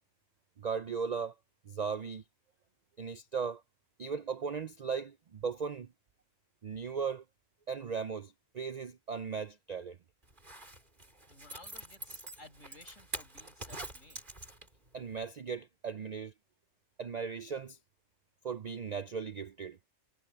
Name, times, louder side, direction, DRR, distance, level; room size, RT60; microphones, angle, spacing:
voice 1, 0.6-1.3 1.7-2.2 3.0-3.6 4.0-5.9 6.6-7.2 7.7-10.0 14.9-16.3 17.0-17.8 18.4-19.8, right 6 dB, 85° right, 0.3 m, -37 dB
Zipper (clothing), 10.3-14.9 15.2-15.3, right 1 dB, 35° right, 4.6 m, -45 dB
voice 2, 11.3-14.2, left 2 dB, 65° left, 7.4 m, -56 dB
omnidirectional pair, 1.4 m